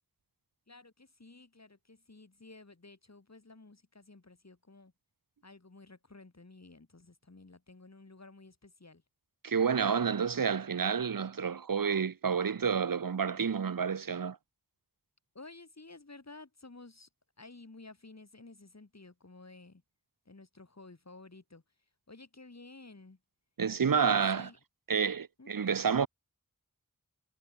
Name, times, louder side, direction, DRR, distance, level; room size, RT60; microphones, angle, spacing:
voice 1, 0.7-4.9 5.4-9.0 15.3-17.1 17.4-19.8 20.3-21.6 22.1-23.2 23.8-24.6 25.4-25.5, left 3 dB, 55° left, 7.5 m, -52 dB
voice 2, 9.4-14.4 23.6-24.5 24.9-26.1, right 6 dB, 85° right, 1.0 m, -29 dB
wide cardioid pair, 70°, 33 cm